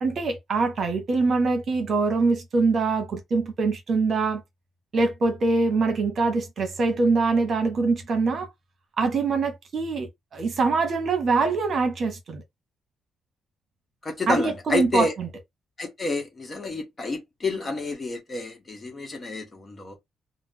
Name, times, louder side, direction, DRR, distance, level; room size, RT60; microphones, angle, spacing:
voice 1, 0.0-4.4 4.9-8.5 9.0-12.4 14.3-15.3, right 4 dB, 50° right, 1.0 m, -24 dB
voice 2, 14.0-15.1 15.8-20.0, left 3 dB, 30° left, 0.9 m, -29 dB
2.5 x 2.0 x 3.6 m
cardioid pair, 90°, 0 cm